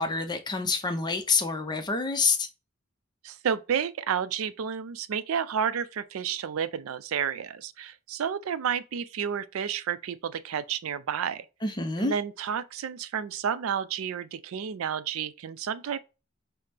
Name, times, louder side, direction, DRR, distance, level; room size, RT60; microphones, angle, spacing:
voice 1, 0.0-2.5 11.6-12.1, left 4 dB, 20° left, 0.5 m, -27 dB
voice 2, 3.2-11.4 12.0-16.0, right 7 dB, 75° right, 0.4 m, -31 dB
5.6 x 2.0 x 3.3 m
head